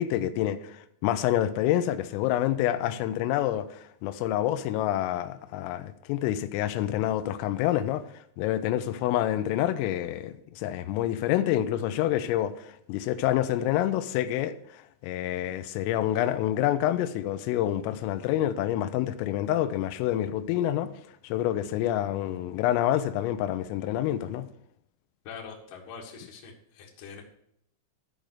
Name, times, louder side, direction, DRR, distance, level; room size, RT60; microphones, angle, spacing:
voice 1, 0.0-8.1 8.4-20.9 21.2-24.5, left 12 dB, 85° left, 3.3 m, -27 dB
voice 2, 25.2-27.2, left 5 dB, 60° left, 2.4 m, -43 dB
13.5 x 5.2 x 6.4 m
omnidirectional pair, 6.0 m